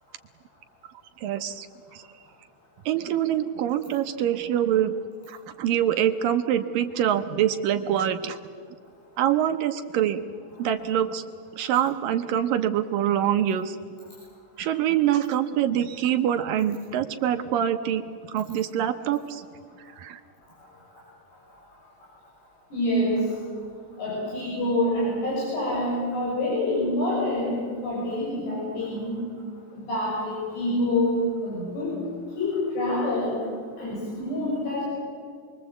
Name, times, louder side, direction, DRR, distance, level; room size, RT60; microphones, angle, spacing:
voice 1, 1.2-1.7 1.9-2.1 2.9-4.9 5.3-8.4 9.2-10.2 10.6-11.2 11.6-13.8 14.6-18.0 18.3-19.5 20.0-20.2, right 10 dB, 70° right, 7 dB, 2.3 m, -25 dB
voice 2, 22.7-23.3 24.0-29.2 29.7-31.2 31.4-32.0 32.4-33.4 33.8-34.8, left 1 dB, 85° left, -6 dB, 9.0 m, -26 dB
27.0 x 23.0 x 8.1 m, 2.1 s
omnidirectional pair, 4.7 m